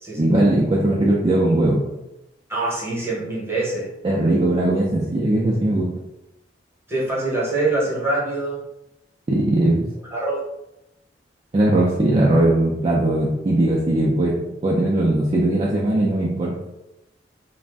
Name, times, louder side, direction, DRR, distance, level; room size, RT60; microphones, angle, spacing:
voice 1, 0.2-1.8 4.0-5.9 9.3-9.9 11.5-14.4 14.6-16.5, right 1 dB, 35° right, -5 dB, 0.4 m, -19 dB
voice 2, 2.5-3.9 6.9-8.6 10.1-10.4, right 2 dB, 15° right, -6 dB, 0.9 m, -24 dB
2.5 x 2.0 x 3.4 m, 0.91 s
head